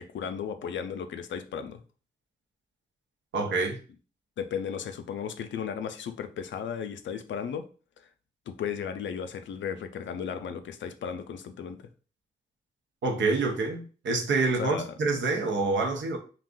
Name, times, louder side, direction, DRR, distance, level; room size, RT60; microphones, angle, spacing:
voice 1, 0.0-1.8 4.4-7.7 8.0-8.1 8.5-11.9 14.6-14.9, left 7 dB, 70° left, 0.4 m, -35 dB
voice 2, 3.3-3.8 13.0-16.2, right 3 dB, 70° right, 0.7 m, -27 dB
2.5 x 2.2 x 3.7 m
supercardioid pair, 50°, 20 cm